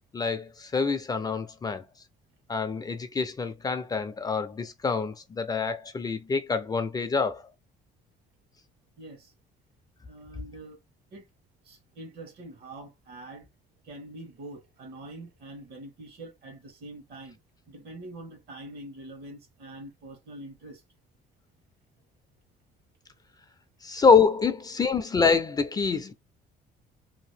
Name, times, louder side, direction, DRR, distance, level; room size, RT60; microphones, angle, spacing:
voice 1, 0.1-1.9 2.5-7.4 23.8-26.1, left 5 dB, 25° left, 0.4 m, -26 dB
voice 2, 9.0-9.3 10.0-10.8 11.1-11.3 11.6-13.5 13.8-17.4 17.7-20.8, right 2 dB, 65° right, 1.3 m, -44 dB
2.8 x 2.4 x 3.3 m
cardioid pair, 110°, 17 cm